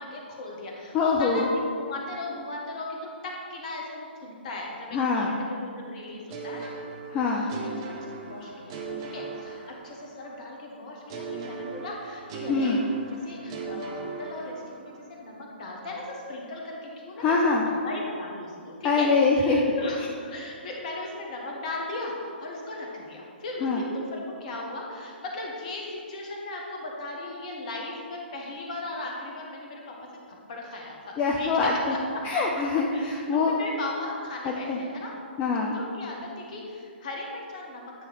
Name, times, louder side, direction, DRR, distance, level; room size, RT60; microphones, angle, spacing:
voice 1, 0.0-1.5 1.7-6.8 7.2-12.8 13.1-17.4 17.7-32.2 32.9-35.1 35.7-37.9, left 2 dB, 40° left, -1 dB, 1.3 m, -37 dB
voice 2, 0.9-1.5 4.9-5.4 7.1-7.5 12.5-12.8 17.2-17.7 18.8-19.7 23.6-23.8 31.2-31.9 32.2-33.5 34.4-34.8 35.4-35.8, left 4 dB, 20° left, -1 dB, 0.5 m, -24 dB
sound 1, 6.3-10.2 11.1-15.0, right 4 dB, 30° right, 0.8 m, -38 dB
9.1 x 3.2 x 5.4 m, 2.3 s
figure-of-eight pair, 125°, 6 cm